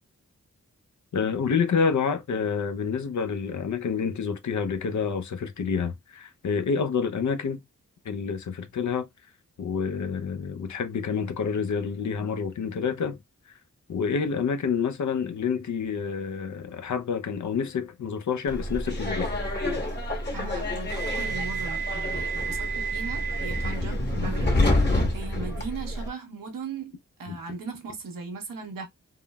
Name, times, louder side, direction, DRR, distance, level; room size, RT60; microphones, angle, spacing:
voice 1, 1.1-7.6 8.1-9.1 9.6-13.2 13.9-19.4 27.3-27.4, left 6 dB, 60° left, 0.6 m, -28 dB
Subway metro underground, 18.5-26.1, equal, 30° left, 1.1 m, -27 dB
voice 2, 20.3-24.5 25.1-28.8, right 4 dB, 85° right, 0.9 m, -38 dB
3.6 x 2.0 x 2.2 m
cardioid pair, 40°, 32 cm